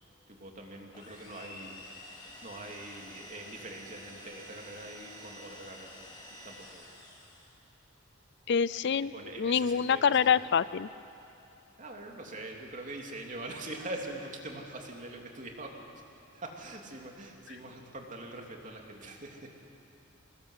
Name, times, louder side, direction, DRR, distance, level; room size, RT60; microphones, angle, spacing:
voice 1, 0.3-2.1 2.4-6.1 6.4-6.9 9.0-10.4 11.8-16.0 16.3-19.5, right 2 dB, 40° right, 1 dB, 3.0 m, -43 dB
sound 1, 0.9-7.6, left 1 dB, 20° left, 3.7 m, -49 dB
voice 2, 8.5-9.1 9.4-10.9, left 7 dB, 55° left, 17 dB, 0.4 m, -26 dB
25.0 x 20.5 x 8.2 m, 2.8 s
head